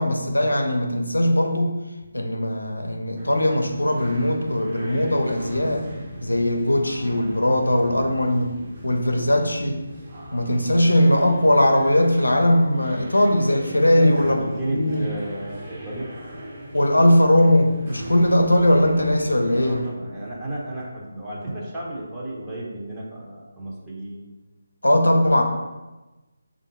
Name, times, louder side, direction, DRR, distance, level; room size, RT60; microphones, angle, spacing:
voice 1, 0.0-1.8 2.1-5.9 6.2-8.5 8.8-9.8 10.3-14.4 14.7-15.1 16.7-19.8 24.8-25.4, left 1 dB, 80° left, 3 dB, 0.6 m, -19 dB
sound 1, 3.2-19.9, right 1 dB, 30° right, 1.0 m, -39 dB
voice 2, 13.8-16.1 19.5-24.2, right 1 dB, 15° right, -6 dB, 0.8 m, -33 dB
3.4 x 2.5 x 4.3 m, 1.1 s
figure-of-eight pair, 155°, 0 cm